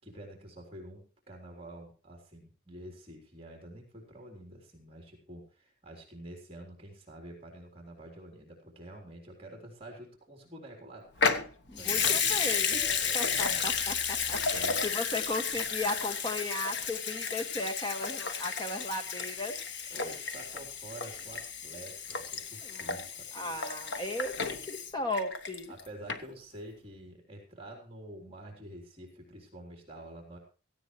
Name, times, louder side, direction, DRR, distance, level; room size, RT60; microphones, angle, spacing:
voice 1, 0.0-13.7 14.5-14.8 19.9-23.6 25.7-30.4, right 1 dB, 30° right, 2 dB, 3.6 m, -48 dB
Water tap faucet / Sink (filling or washing) / Liquid, 11.2-25.8 26.1-26.2, left 6 dB, 60° left, 1.1 m, -32 dB
voice 2, 11.7-12.8 13.1-19.6 22.6-22.9 23.3-25.7, left 2 dB, 20° left, 6 dB, 1.8 m, -36 dB
17.0 x 15.0 x 3.2 m, 0.35 s
head